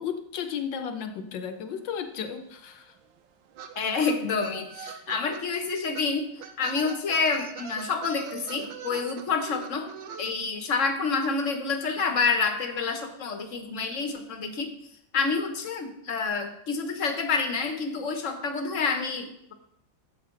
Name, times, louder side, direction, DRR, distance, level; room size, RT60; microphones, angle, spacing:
voice 1, 0.0-2.9, left 7 dB, 75° left, 7 dB, 1.6 m, -34 dB
sound 1, 1.9-2.0 2.1-5.4 5.9-6.1 6.4-10.3, right 7 dB, 80° right, 1.5 m, -41 dB
voice 2, 3.8-6.3 6.6-9.9 10.2-14.7 15.1-19.5, left 4 dB, 45° left, 6 dB, 1.2 m, -28 dB
11.5 x 8.0 x 3.8 m, 0.76 s
omnidirectional pair, 2.1 m